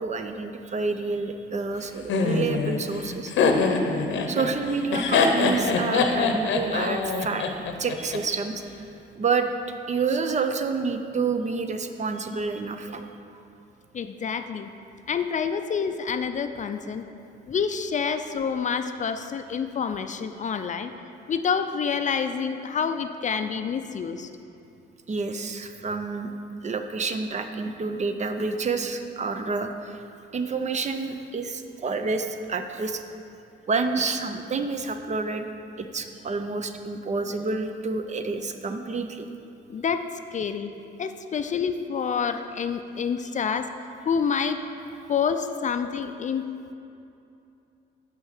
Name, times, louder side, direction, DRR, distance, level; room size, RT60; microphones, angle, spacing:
voice 1, 0.0-3.3 4.3-8.6 9.2-9.5 9.9-13.1 13.3-13.4 25.1-26.3 26.6-30.0 30.3-33.0 33.7-35.4 35.8-39.3, right 4 dB, 35° right, 7 dB, 0.6 m, -29 dB
Laughter, 2.1-8.2, left 4 dB, 70° left, 0.8 m, -24 dB
voice 2, 13.9-14.7 15.1-17.0 17.5-20.9 21.3-24.3 39.7-40.0 40.3-40.7 41.0-44.6 45.1-46.4, left 6 dB, 40° left, 8 dB, 0.4 m, -28 dB
6.1 x 5.7 x 6.5 m, 2.7 s
cardioid pair, 90°, 20 cm